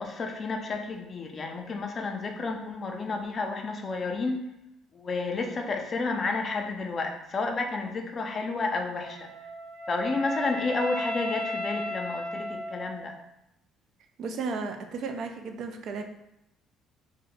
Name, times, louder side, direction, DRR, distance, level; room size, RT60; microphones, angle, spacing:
voice 1, 0.0-4.4 4.9-9.3 9.9-13.2, left 3 dB, 40° left, 4 dB, 0.5 m, -31 dB
Wind instrument woodwind instrument, 9.0-13.2, left 1 dB, 35° right, 0.7 m, -34 dB
voice 2, 14.2-16.0, right 4 dB, 65° right, 5 dB, 0.4 m, -34 dB
2.7 x 2.1 x 4.0 m, 0.84 s
cardioid pair, 90°, 0 cm